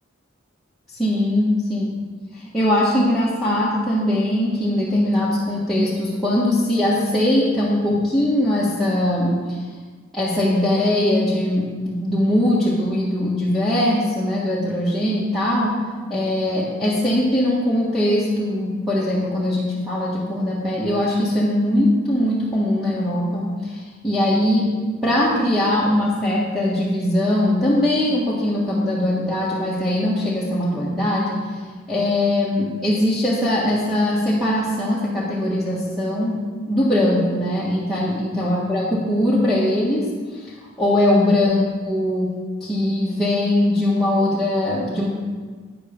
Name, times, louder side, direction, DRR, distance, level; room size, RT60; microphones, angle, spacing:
voice 1, 0.9-1.8 2.4-9.6 10.1-15.8 16.1-24.7 25.0-31.6 31.9-36.4 36.7-40.1 40.3-42.3 42.6-45.1, left 1 dB, ahead, -10 dB, 1.5 m, -21 dB
9.7 x 8.0 x 5.2 m, 1.5 s
head